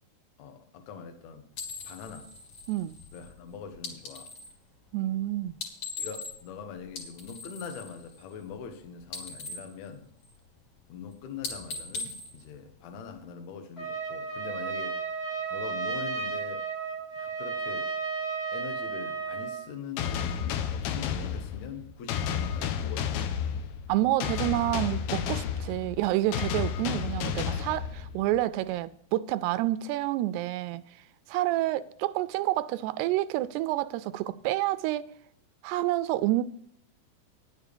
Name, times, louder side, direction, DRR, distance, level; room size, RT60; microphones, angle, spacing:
voice 1, 0.4-1.5 1.8-2.3 3.1-4.3 6.0-10.1 10.9-16.7 17.2-17.9 18.5-23.2, left 6 dB, 65° left, 1.9 m, -43 dB
sound 1, 1.5-4.6 5.5-6.6 6.9-8.7 9.0-10.6 10.9-11.1 11.4-13.2, left 4 dB, 45° left, 2.3 m, -40 dB
voice 2, 4.9-5.6 23.9-30.8 31.3-35.1 35.6-36.4, right 15 dB, 85° right, 2.6 m, -28 dB
Trumpet, 13.8-19.6, right 5 dB, 25° left, 1.4 m, -33 dB
sound 2, 20.0-28.4, left 8 dB, 80° left, 2.6 m, -32 dB
10.0 x 7.2 x 6.7 m
omnidirectional pair, 4.7 m